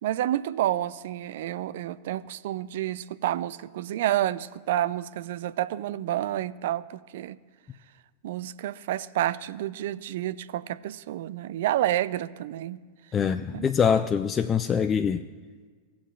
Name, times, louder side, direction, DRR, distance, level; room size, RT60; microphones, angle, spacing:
voice 1, 0.0-7.4 8.2-12.8 13.5-13.7, right 13 dB, 55° right, 16 dB, 0.3 m, -29 dB
voice 2, 13.1-15.2, left 7 dB, 25° left, 9 dB, 0.4 m, -24 dB
18.0 x 7.2 x 2.5 m, 1.5 s
figure-of-eight pair, 90°, 0 cm